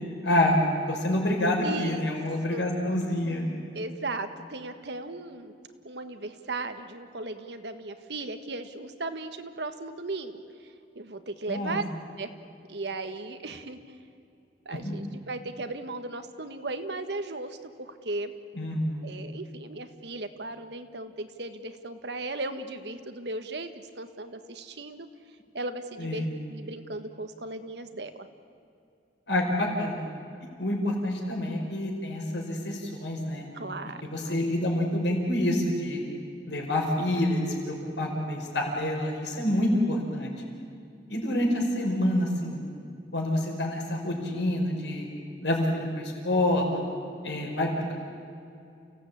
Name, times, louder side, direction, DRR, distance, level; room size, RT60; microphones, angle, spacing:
voice 1, 0.2-0.6 0.9-3.5 11.5-11.8 14.8-15.0 18.6-19.0 26.0-26.3 29.3-30.0 30.6-33.5 34.0-36.0 36.5-40.3 41.1-42.6 43.1-45.1 45.4-46.8 47.2-47.7, left 1 dB, 80° left, 1 dB, 5.4 m, -27 dB
voice 2, 1.6-2.1 2.5-2.7 3.7-5.5 5.8-11.8 12.2-12.3 12.7-13.8 14.6-18.3 19.0-23.7 24.0-25.1 25.5-28.3 33.5-34.0 34.2-34.4 39.8-40.0, right 2 dB, 70° right, 8 dB, 1.5 m, -36 dB
29.5 x 16.5 x 8.7 m, 2.5 s
head